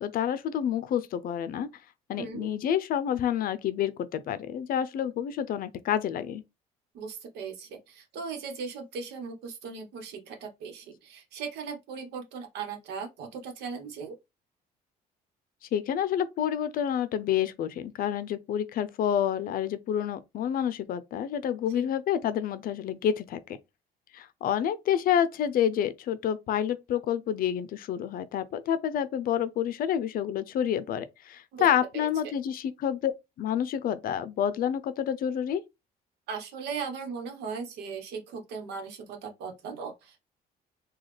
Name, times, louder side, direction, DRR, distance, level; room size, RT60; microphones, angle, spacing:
voice 1, 0.0-1.7 2.1-6.4 15.7-23.6 24.1-33.1 33.4-35.6, left 9 dB, 60° left, 0.5 m, -28 dB
voice 2, 6.9-14.2 21.7-21.8 31.5-31.6 31.9-32.1 36.3-40.2, right 5 dB, 80° right, 1.1 m, -38 dB
3.9 x 2.3 x 3.2 m
cardioid pair, 110°, 17 cm